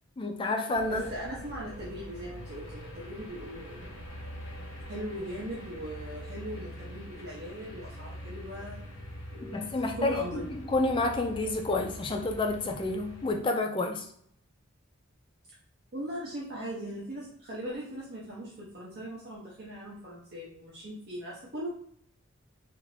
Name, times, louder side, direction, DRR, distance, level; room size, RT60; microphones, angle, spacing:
voice 1, 0.2-1.1 9.4-14.1, left 2 dB, 25° left, 3 dB, 0.3 m, -29 dB
sound 1, 0.7-13.4, equal, 70° left, 0.8 m, -44 dB
voice 2, 0.9-4.0 4.9-9.0 9.3-9.7 10.0-10.5 15.9-21.7, equal, 50° right, -5 dB, 0.7 m, -39 dB
2.5 x 2.5 x 3.2 m, 0.66 s
head